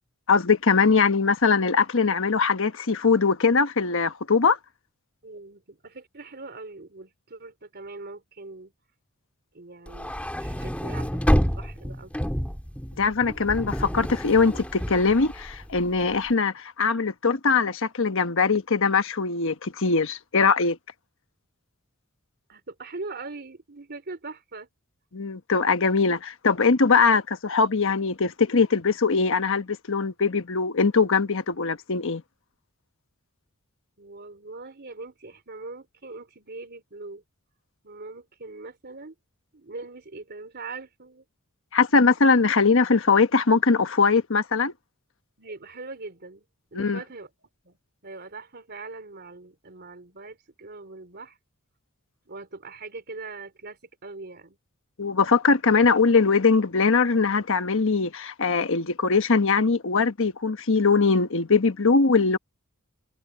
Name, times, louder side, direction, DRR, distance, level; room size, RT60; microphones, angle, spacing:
voice 1, 0.3-4.6 13.0-20.8 25.1-32.2 41.7-44.7 46.7-47.0 55.0-62.4, left 4 dB, 65° left, 1.2 m, -21 dB
voice 2, 5.2-8.7 9.5-10.1 10.4-12.3 22.5-24.7 34.0-37.2 37.8-39.2 39.5-41.2 45.4-46.4 46.7-47.3 47.6-47.8 48.0-51.4 52.3-54.6, right 3 dB, 50° right, 3.4 m, -41 dB
sound 1, 9.9-16.2, equal, 5° left, 2.5 m, -28 dB
head